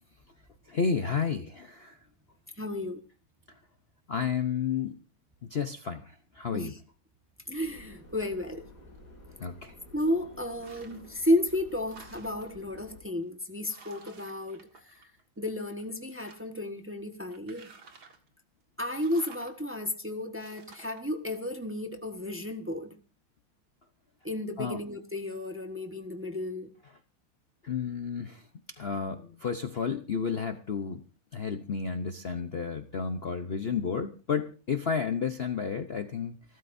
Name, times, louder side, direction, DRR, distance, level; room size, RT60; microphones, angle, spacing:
voice 1, 0.7-2.0 4.1-5.0 5.5-6.0 6.4-6.7 9.4-9.7 24.6-24.8 27.6-28.4 28.8-31.0 31.3-36.4, left 6 dB, 70° left, 0.5 m, -31 dB
voice 2, 2.6-3.0 6.5-6.8 7.5-8.7 9.9-14.7 15.4-17.7 18.8-23.0 24.2-26.7, left 1 dB, 10° right, 0.9 m, -32 dB
Subway metro underground, 7.6-13.0, left 2 dB, 45° left, 5.0 m, -52 dB
sound 1, 10.5-11.1 11.5-12.6 13.2-13.3 13.6-15.4 15.7-16.6 17.3-18.3 18.9-19.5 20.4-21.0, right 4 dB, 50° right, 2.3 m, -53 dB
28.5 x 13.0 x 2.7 m
omnidirectional pair, 2.4 m